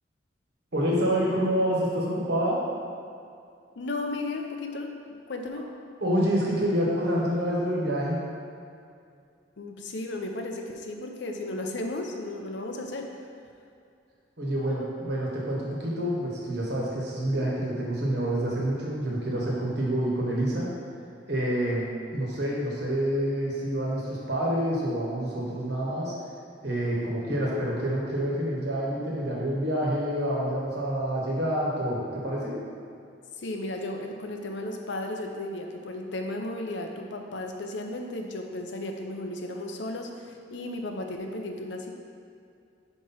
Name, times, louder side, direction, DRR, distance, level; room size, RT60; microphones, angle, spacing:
voice 1, 0.7-2.6 6.0-8.2 14.4-20.7 21.3-26.1 26.6-32.5, equal, 65° right, -4 dB, 1.4 m, -27 dB
voice 2, 3.8-5.7 9.6-13.1 33.4-41.9, left 2 dB, 70° left, 3 dB, 0.6 m, -34 dB
4.7 x 4.4 x 5.6 m, 2.4 s
head